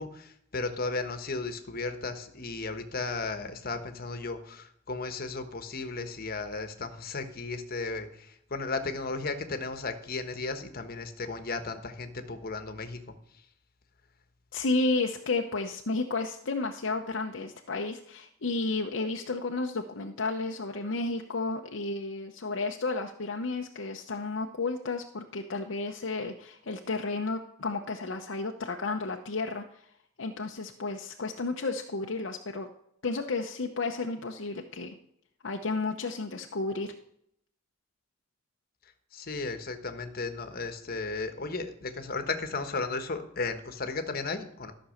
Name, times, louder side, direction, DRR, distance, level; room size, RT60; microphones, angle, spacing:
voice 1, 0.0-13.4 39.1-44.7, left 3 dB, 50° left, 8 dB, 1.3 m, -35 dB
voice 2, 14.5-29.6 30.2-32.7 33.0-34.9 35.4-36.9, left 3 dB, 65° left, 2 dB, 0.8 m, -32 dB
13.5 x 6.2 x 6.4 m, 0.71 s
head